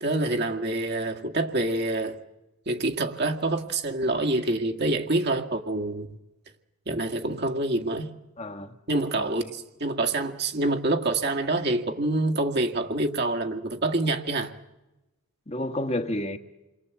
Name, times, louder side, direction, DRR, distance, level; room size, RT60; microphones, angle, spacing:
voice 1, 0.0-2.2 2.7-6.1 6.9-8.1 8.9-14.5, right 2 dB, 50° right, 2.0 m, -26 dB
voice 2, 8.4-8.7 9.1-9.5 15.5-16.4, left 1 dB, 30° left, 1.5 m, -31 dB
28.5 x 23.0 x 8.3 m
head